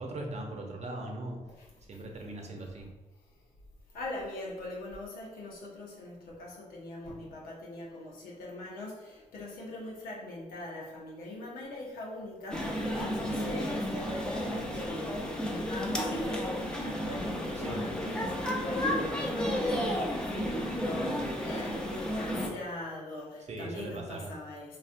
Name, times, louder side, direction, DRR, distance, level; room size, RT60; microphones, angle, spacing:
voice 1, 0.0-1.4 1.9-2.9 17.6-17.8 23.5-24.3, right 2 dB, 50° right, 1 dB, 0.7 m, -39 dB
voice 2, 3.9-24.8, left 2 dB, 90° left, -3 dB, 0.8 m, -41 dB
sound 1, 12.5-22.5, equal, 5° left, 0.6 m, -32 dB
3.3 x 2.3 x 2.5 m, 1.1 s
supercardioid pair, 55°, 14 cm